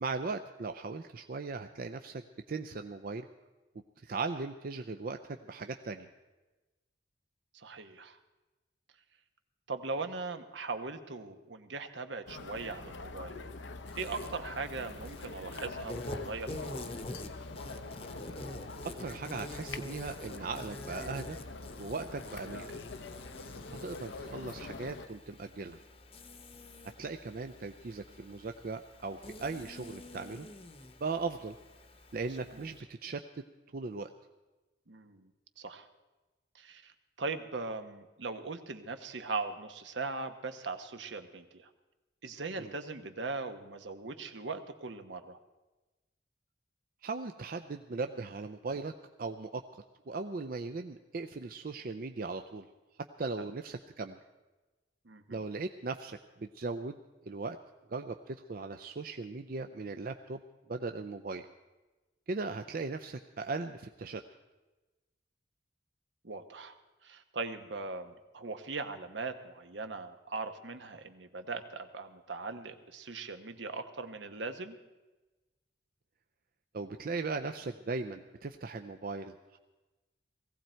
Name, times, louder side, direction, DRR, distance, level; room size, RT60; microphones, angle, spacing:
voice 1, 0.0-3.3 4.0-6.1 19.0-21.4 21.8-22.8 23.8-25.8 27.0-30.5 31.0-31.6 32.1-33.4 33.7-34.1 42.6-42.7 47.0-48.9 49.2-49.6 50.1-52.7 53.2-54.2 55.3-57.0 57.3-57.6 57.9-60.4 60.7-61.4 62.3-64.2 76.7-79.6, right 3 dB, 50° right, 7 dB, 0.5 m, -38 dB
voice 2, 7.5-8.2 9.7-13.4 14.0-17.0 32.5-32.7 34.9-35.3 35.6-35.9 36.5-41.7 42.2-45.4 53.4-53.5 55.0-55.4 66.2-74.8, right 3 dB, 75° right, 8 dB, 1.1 m, -40 dB
sound 1, 12.3-25.1, left 3 dB, 85° left, 0.8 m, -44 dB
Insect, 13.9-32.8, left 2 dB, 30° left, 0.9 m, -47 dB
18.0 x 15.5 x 4.5 m, 1.1 s
head